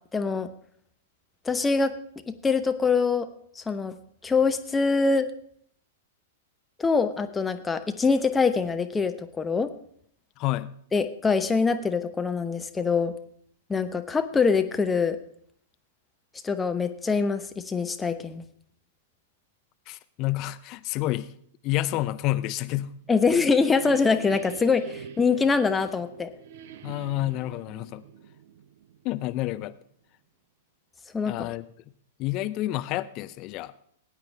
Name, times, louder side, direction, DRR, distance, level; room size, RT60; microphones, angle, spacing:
voice 1, 0.1-0.5 1.4-1.9 2.3-3.3 3.5-3.9 4.2-5.3 6.8-9.7 10.9-13.1 13.7-15.2 16.4-18.4 23.1-26.3 31.1-31.5, left 4 dB, 15° left, 8 dB, 0.9 m, -24 dB
voice 2, 10.4-10.7 19.9-21.3 21.6-22.9 26.8-28.0 29.0-29.7 31.3-31.6 32.2-33.7, left 16 dB, 40° left, 14 dB, 0.5 m, -29 dB
sound 1, 22.9-29.4, right 7 dB, 55° right, 0.7 m, -44 dB
19.0 x 9.0 x 3.5 m, 0.65 s
figure-of-eight pair, 100°, 0 cm